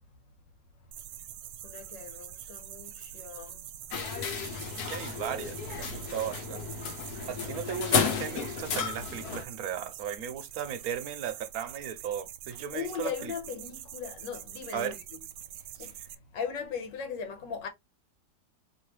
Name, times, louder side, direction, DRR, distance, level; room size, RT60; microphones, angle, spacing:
sound 1, 0.9-16.2, right 11 dB, 90° right, 1.3 m, -45 dB
voice 1, 1.6-3.8 12.5-15.2 15.5-17.7, left 6 dB, 85° left, 1.7 m, -39 dB
sound 2, 3.9-9.4, left 6 dB, 65° left, 1.3 m, -32 dB
voice 2, 4.9-6.6 7.3-13.3 14.7-15.0 15.8-15.9, right 9 dB, 65° right, 1.1 m, -36 dB
4.5 x 3.1 x 3.1 m
omnidirectional pair, 1.9 m